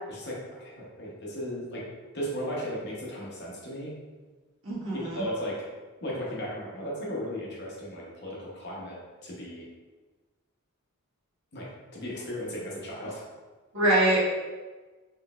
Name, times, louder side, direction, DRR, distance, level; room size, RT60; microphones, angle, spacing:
voice 1, 0.1-1.8 2.1-3.9 5.2-5.6 6.0-9.7 11.5-11.7 11.9-13.2, equal, 50° left, -4 dB, 0.9 m, -36 dB
voice 2, 4.6-5.2 13.7-14.2, right 1 dB, 65° right, -7 dB, 1.4 m, -24 dB
3.9 x 3.2 x 2.4 m, 1.3 s
head